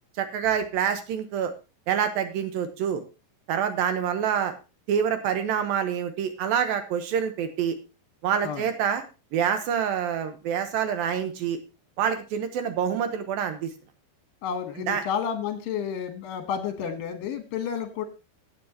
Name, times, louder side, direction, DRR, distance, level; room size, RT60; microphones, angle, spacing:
voice 1, 0.2-1.5 1.9-3.0 3.5-4.5 4.9-7.8 8.2-9.0 9.3-11.6 12.0-13.7 14.9-15.0, right 8 dB, 80° right, 9 dB, 2.2 m, -26 dB
voice 2, 14.4-18.0, left 7 dB, 70° left, 7 dB, 2.3 m, -31 dB
17.5 x 8.4 x 2.9 m, 0.29 s
omnidirectional pair, 5.4 m